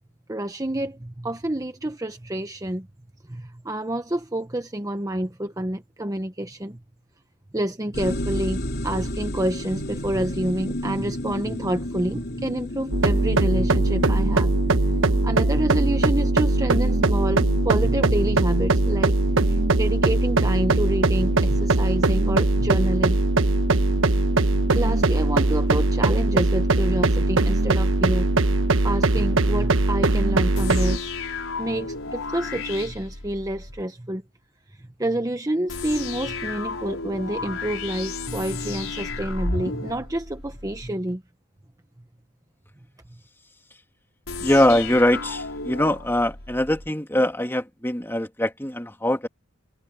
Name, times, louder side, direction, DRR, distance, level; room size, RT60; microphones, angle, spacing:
voice 1, 0.3-2.9 3.3-6.8 7.5-19.2 19.4-23.2 24.7-28.4 28.8-31.1 31.6-34.2 34.8-41.2, right 1 dB, 15° right, 1.0 m, -28 dB
sound 1, 7.9-27.3, left 1 dB, 50° left, 4.0 m, -35 dB
sound 2, 12.9-31.0, right 2 dB, 70° right, 1.2 m, -20 dB
sound 3, 30.6-33.8 35.7-40.9 44.3-46.9, left 3 dB, 85° left, 5.1 m, -33 dB
voice 2, 44.4-49.3, left 1 dB, 10° left, 2.3 m, -22 dB
head